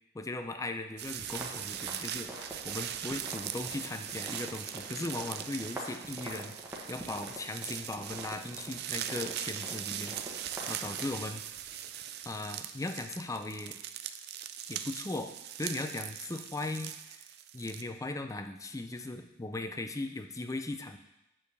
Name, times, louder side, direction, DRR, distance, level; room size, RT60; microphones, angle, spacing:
voice 1, 0.1-6.6 6.9-10.2 10.7-11.4 12.2-13.8 14.6-15.3 15.6-17.2 17.5-21.0, left 2 dB, 15° left, 6 dB, 0.5 m, -38 dB
sound 1, 1.0-17.8, right 10 dB, 50° right, 0.4 m, -40 dB
sound 2, 1.2-11.0, equal, 10° right, 1.2 m, -46 dB
8.8 x 6.8 x 3.4 m, 0.90 s
head